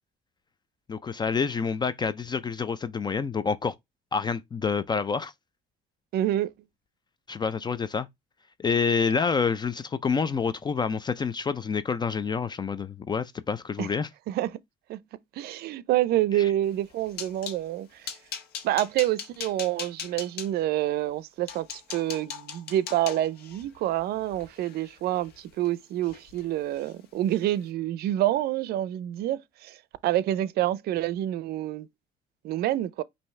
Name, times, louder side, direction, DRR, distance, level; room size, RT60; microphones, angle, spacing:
voice 1, 0.9-3.7 4.1-5.3 7.3-8.1 8.6-14.1 16.3-16.5, left 5 dB, 25° left, 0.4 m, -28 dB
voice 2, 6.1-6.5 13.8-13.9 14.3-14.5 14.9-15.0 15.3-18.1 18.6-29.8 30.0-31.9 32.4-33.0, right 13 dB, 70° right, 0.5 m, -27 dB
sound 1, 16.7-17.6 18.0-20.5 21.1-21.2 21.5-25.7 26.0-26.4 26.7-26.9 27.3-27.5, left 7 dB, 70° left, 1.2 m, -40 dB
5.5 x 2.7 x 3.1 m
cardioid pair, 110°, 17 cm